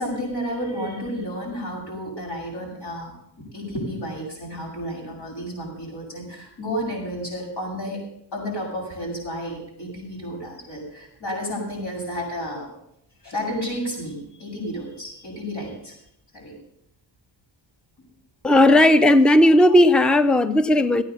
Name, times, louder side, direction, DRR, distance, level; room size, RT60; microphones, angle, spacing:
voice 1, 0.0-8.0 8.3-12.7 13.2-16.0 16.3-16.5, equal, 65° left, -1 dB, 7.8 m, -31 dB
voice 2, 18.4-21.0, left 1 dB, ahead, 11 dB, 0.5 m, -15 dB
15.0 x 9.1 x 6.9 m, 0.74 s
wide cardioid pair, 150°, 43 cm